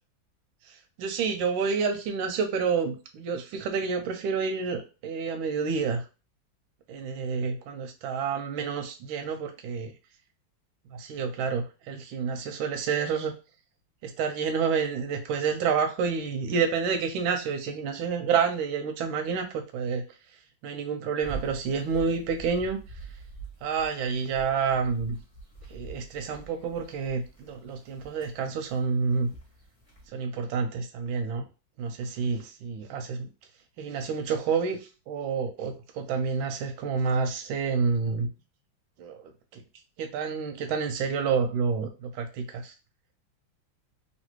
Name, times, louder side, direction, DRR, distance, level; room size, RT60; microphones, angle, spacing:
voice 1, 0.6-6.0 6.9-9.9 10.9-13.3 14.0-20.0 20.6-23.1 23.6-25.2 25.7-29.3 30.1-31.4 31.8-33.3 33.8-38.3 39.0-39.6 40.0-42.7, right 5 dB, 90° right, 5 dB, 1.4 m, -29 dB
sound 1, 21.2-30.1, right 4 dB, 25° left, 0.8 m, -45 dB
3.2 x 2.7 x 2.9 m, 0.31 s
omnidirectional pair, 2.1 m